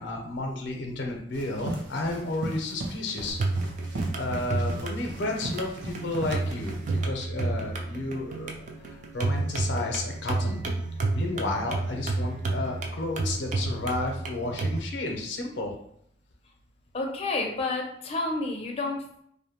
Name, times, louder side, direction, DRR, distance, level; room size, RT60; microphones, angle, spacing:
voice 1, 0.0-3.4 4.1-10.6 11.1-15.7, left 2 dB, 85° left, 1 dB, 0.5 m, -32 dB
sound 1, 1.3-7.0, right 2 dB, 80° right, 0.6 m, -37 dB
sound 2, 3.3-14.8, right 3 dB, 40° right, 0.3 m, -31 dB
voice 2, 16.9-19.2, left 2 dB, 35° left, 1 dB, 0.5 m, -30 dB
2.5 x 2.1 x 2.8 m, 0.68 s
head